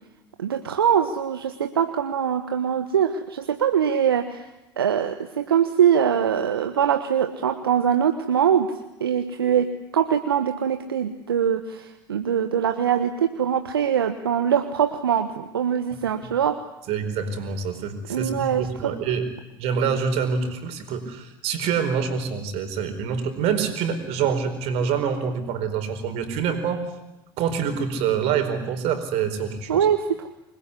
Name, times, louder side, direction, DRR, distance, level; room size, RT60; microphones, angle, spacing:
voice 1, 0.4-4.5 4.8-8.7 9.0-16.6 18.1-18.9 29.7-30.3, right 8 dB, 85° right, 7 dB, 1.2 m, -23 dB
voice 2, 16.9-19.3 19.6-26.8 27.4-29.9, right 6 dB, 60° right, 8 dB, 4.6 m, -26 dB
26.0 x 21.0 x 9.9 m, 0.95 s
hypercardioid pair, 70°, 12 cm